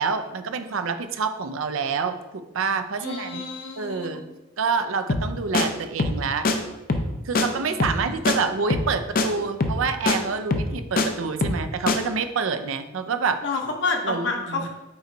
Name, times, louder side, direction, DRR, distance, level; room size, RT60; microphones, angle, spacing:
voice 1, 0.0-3.4 3.8-4.3 4.6-6.5 7.2-13.4 14.0-14.7, right 5 dB, 75° right, 9 dB, 0.5 m, -27 dB
voice 2, 3.0-4.2 7.5-8.2 13.4-14.7, left 3 dB, 60° left, 2 dB, 0.9 m, -30 dB
sound 1, 5.1-5.3 5.5-5.7 6.0-6.2 6.4-6.6 6.9-7.1 7.4-7.5 7.8-8.0 8.3-8.4 8.7-8.9 9.2-9.3 9.6-9.8 10.1-10.2 10.5-11.1 11.4-11.6 11.9-12.0, left 3 dB, 45° left, 0.5 m, -22 dB
5.5 x 4.5 x 3.9 m, 1.0 s
head